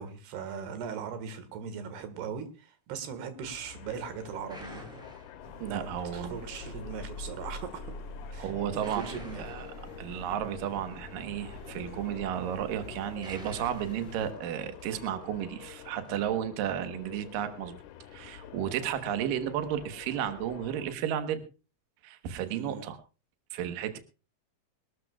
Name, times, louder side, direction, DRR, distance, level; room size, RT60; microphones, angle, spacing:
voice 1, 0.0-5.1 5.7-7.9 8.3-9.4 22.5-22.9, right 7 dB, 90° right, 9 dB, 3.7 m, -40 dB
sound 1, 3.4-20.9, left 11 dB, 75° left, 2.0 m, -48 dB
sound 2, 4.5-5.9 8.6-15.1, equal, ahead, 4.4 m, -50 dB
sound 3, 5.4-14.3, left 2 dB, 35° left, 2.5 m, -45 dB
voice 2, 5.6-6.4 8.4-9.0 9.4-9.7 10.0-17.7 18.1-21.4 22.0-23.0 23.5-24.0, right 10 dB, 65° right, 8 dB, 2.7 m, -33 dB
24.0 x 13.0 x 2.4 m, 0.33 s
omnidirectional pair, 4.5 m